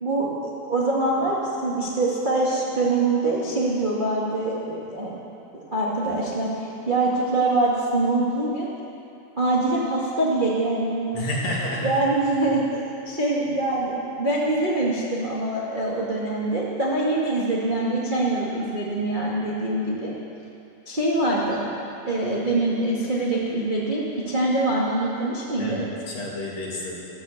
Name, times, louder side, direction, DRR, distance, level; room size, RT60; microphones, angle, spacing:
voice 1, 0.0-5.1 5.7-8.7 9.4-11.2 11.8-12.6 13.0-20.1 20.8-21.6 22.1-25.8, right 2 dB, 40° right, -5 dB, 0.6 m, -24 dB
voice 2, 11.1-12.0 25.6-26.9, left 1 dB, 45° left, -4 dB, 3.2 m, -29 dB
14.0 x 13.0 x 7.0 m, 2.7 s
omnidirectional pair, 4.5 m